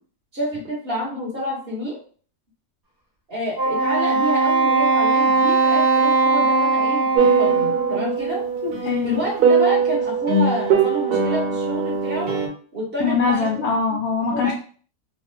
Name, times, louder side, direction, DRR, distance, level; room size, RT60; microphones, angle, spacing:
voice 1, 0.3-2.0 3.3-8.5 9.0-12.4 12.7-13.5 14.3-14.5, equal, 40° right, -3 dB, 1.1 m, -28 dB
Wind instrument woodwind instrument, 3.5-8.1, right 3 dB, 20° right, 0.7 m, -19 dB
sound 1, 7.1-12.5, right 5 dB, 85° right, 1.2 m, -21 dB
voice 2, 8.6-9.2 13.0-14.5, left 5 dB, 75° left, 0 dB, 1.0 m, -22 dB
3.1 x 2.0 x 3.1 m, 0.42 s
omnidirectional pair, 1.6 m